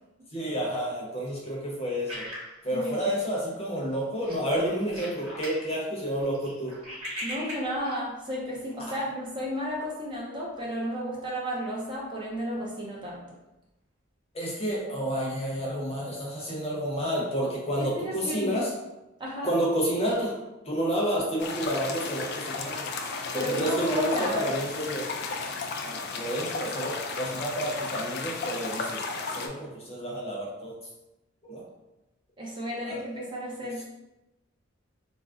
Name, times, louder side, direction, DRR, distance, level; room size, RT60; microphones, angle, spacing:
voice 1, 0.3-2.2 2.6-6.8 14.3-18.7 19.4-20.3 20.6-22.9 23.3-25.1 25.8-30.8 31.4-31.6 32.8-33.0, equal, 30° left, -4 dB, 0.7 m, -30 dB
sound 1, 2.1-3.4 3.8-3.9 4.2-5.6 6.0-8.0, equal, 90° right, 1.1 m, -39 dB
voice 2, 2.7-3.2 7.2-13.4 17.8-18.6 19.2-19.5 23.3-24.5 32.4-33.8, equal, 25° right, -4 dB, 0.5 m, -33 dB
sound 2, 21.4-29.5, left 4 dB, 55° left, 0.3 m, -34 dB
2.4 x 2.0 x 3.5 m, 0.97 s
head